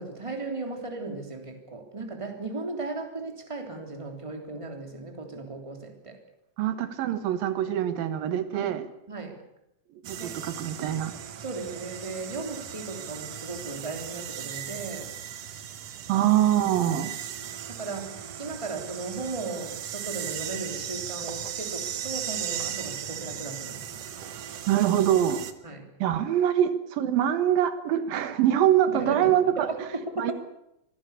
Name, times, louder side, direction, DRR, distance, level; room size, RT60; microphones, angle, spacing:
voice 1, 0.0-6.2 8.5-8.7 9.1-9.4 10.2-10.3 11.4-15.1 17.4-23.9 25.6-25.9 28.9-29.3 29.6-30.3, right 3 dB, 10° right, 3 dB, 3.1 m, -36 dB
voice 2, 6.6-8.8 9.9-11.1 16.1-17.1 24.7-25.4 26.0-29.7 30.2-30.3, right 11 dB, 90° right, 10 dB, 3.2 m, -24 dB
sound 1, 10.0-25.5, right 9 dB, 60° right, 2.0 m, -37 dB
25.0 x 16.5 x 8.4 m, 0.84 s
omnidirectional pair, 4.0 m